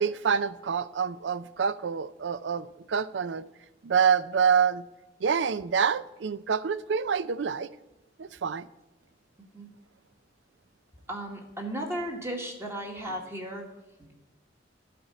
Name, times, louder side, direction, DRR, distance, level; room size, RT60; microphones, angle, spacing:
voice 1, 0.0-3.5 3.8-4.8 5.2-7.7 8.2-8.7, right 6 dB, 80° right, 0.4 m, -27 dB
voice 2, 11.1-13.7 14.0-14.1, right 1 dB, 15° right, 1.5 m, -35 dB
11.0 x 4.3 x 7.9 m
head